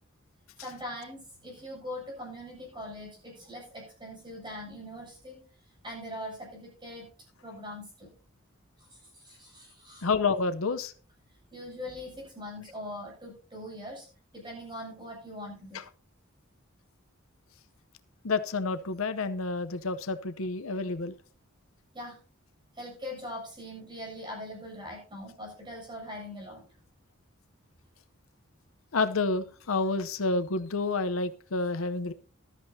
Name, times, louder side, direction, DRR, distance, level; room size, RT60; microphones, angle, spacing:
voice 1, 0.6-5.4 5.8-7.1 7.4-8.1 8.8-10.1 11.5-14.1 14.3-15.8 21.9-22.2 22.7-26.7, left 1 dB, 25° right, -1 dB, 7.6 m, -41 dB
voice 2, 10.0-10.9 18.2-21.2 28.9-32.1, left 3 dB, 80° left, 11 dB, 0.8 m, -29 dB
14.5 x 12.5 x 2.7 m, 0.38 s
head